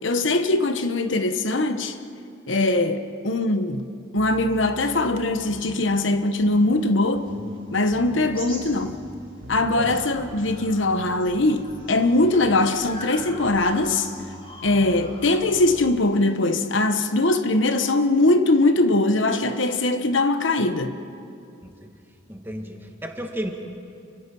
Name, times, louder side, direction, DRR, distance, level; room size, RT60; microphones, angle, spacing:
voice 1, 0.0-2.0 2.5-3.8 4.1-7.3 7.7-9.0 9.5-14.1 14.6-21.0, left 2 dB, 70° left, 1.2 m, -21 dB
sound 1, 4.2-16.0, equal, 70° right, 2.1 m, -42 dB
sound 2, 5.8-9.3 9.7-16.4, left 1 dB, 25° left, 6.8 m, -45 dB
voice 2, 22.3-23.5, equal, 10° right, 1.9 m, -33 dB
29.5 x 25.5 x 5.5 m
head